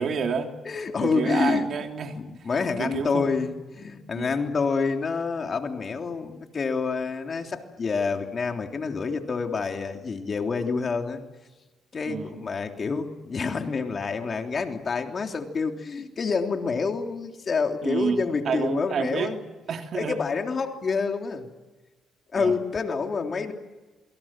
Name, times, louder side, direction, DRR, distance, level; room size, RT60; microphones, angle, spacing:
voice 1, 0.0-0.5 1.0-2.5 2.8-3.3 4.1-4.4 12.1-12.3 17.8-19.3 19.7-20.2 22.4-22.6, right 6 dB, 60° right, 5 dB, 3.1 m, -29 dB
voice 2, 0.7-1.7 2.1-11.2 11.9-19.4 19.9-21.5 22.3-23.5, left 5 dB, 40° left, 4 dB, 3.4 m, -28 dB
27.5 x 23.5 x 7.6 m, 1.2 s
cardioid pair, 90°, 0 cm